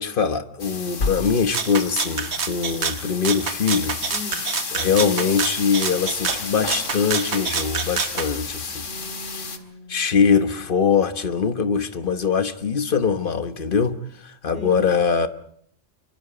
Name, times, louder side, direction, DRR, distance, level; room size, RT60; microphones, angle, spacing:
voice 1, 0.0-4.0 4.7-8.9 9.9-15.3, left 6 dB, 45° left, 1.3 m, -22 dB
sound 1, 0.6-9.6, left 4 dB, 80° left, 2.1 m, -32 dB
Rattle (instrument), 1.5-8.3, right 6 dB, 60° right, 1.4 m, -27 dB
voice 2, 4.1-4.4 8.8-10.0 14.5-14.8, left 2 dB, 40° right, 4.9 m, -39 dB
25.5 x 24.0 x 5.1 m
omnidirectional pair, 1.3 m